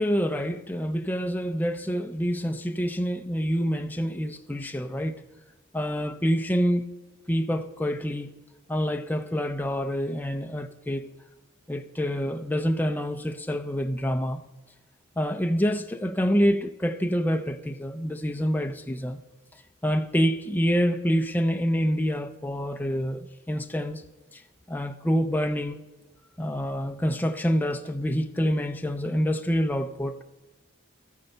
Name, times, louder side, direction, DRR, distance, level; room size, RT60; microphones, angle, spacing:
voice 1, 0.0-5.2 5.7-7.0 7.3-8.3 8.7-11.1 11.7-14.4 15.2-19.2 19.8-24.0 24.3-24.4 24.7-25.8 26.4-30.2, equal, 10° left, 0.5 m, -27 dB
13.5 x 8.4 x 6.6 m
head